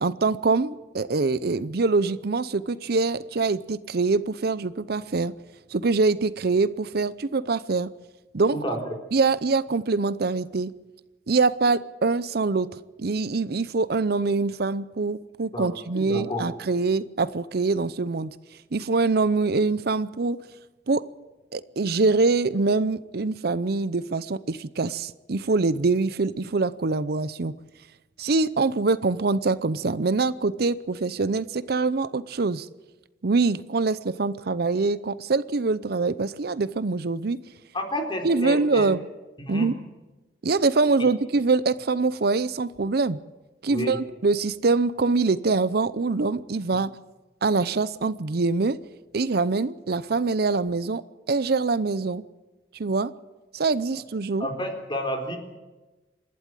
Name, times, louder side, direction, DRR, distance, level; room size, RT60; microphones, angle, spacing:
voice 1, 0.0-5.3 5.7-7.9 8.3-8.6 9.1-10.7 11.3-12.7 13.0-18.3 18.7-20.4 20.9-21.1 21.5-27.6 28.2-32.7 33.2-37.4 38.0-39.0 39.5-39.8 40.4-43.2 43.6-46.9 47.4-48.8 49.1-52.2 52.7-53.1 53.5-54.5, right 3 dB, 60° right, 16 dB, 0.6 m, -24 dB
voice 2, 15.9-16.5 37.7-38.9 39.4-39.7 41.0-41.1 43.7-44.0 54.4-55.4, left 1 dB, 30° left, 4 dB, 4.0 m, -30 dB
27.0 x 12.0 x 9.0 m, 1.1 s
head